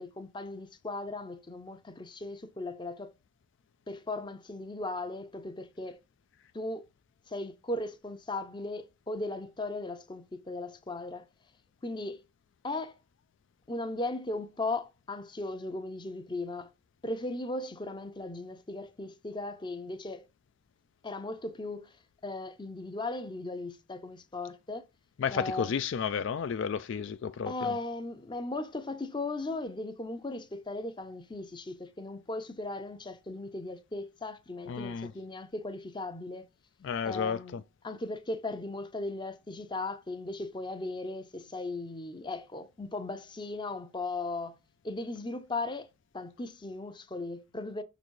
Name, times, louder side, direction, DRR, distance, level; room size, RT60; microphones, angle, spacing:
voice 1, 0.0-3.1 3.9-6.0 6.5-6.8 7.3-11.2 11.8-12.2 12.6-12.9 13.7-16.7 17.0-20.3 21.0-22.0 22.2-24.9 25.3-25.8 27.5-36.5 37.1-44.6 44.8-47.8, left 2 dB, 20° left, 0.6 m, -37 dB
voice 2, 25.2-27.8 34.7-35.1 36.8-37.6, left 6 dB, 55° left, 0.3 m, -32 dB
6.2 x 4.0 x 4.6 m
head